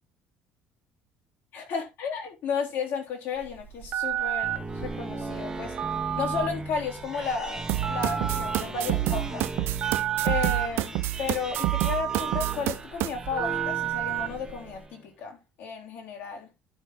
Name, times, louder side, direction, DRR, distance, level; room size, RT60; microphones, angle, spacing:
voice 1, 1.5-5.8 6.2-9.5 10.2-16.5, left 5 dB, 60° left, 3.6 m, -33 dB
Telephone, 3.4-14.8, right 10 dB, 45° right, 1.1 m, -32 dB
sound 1, 4.2-15.0, right 2 dB, 15° right, 1.5 m, -37 dB
sound 2, 7.7-13.1, right 17 dB, 70° right, 0.6 m, -28 dB
11.5 x 6.1 x 3.1 m
supercardioid pair, 95°, 4 cm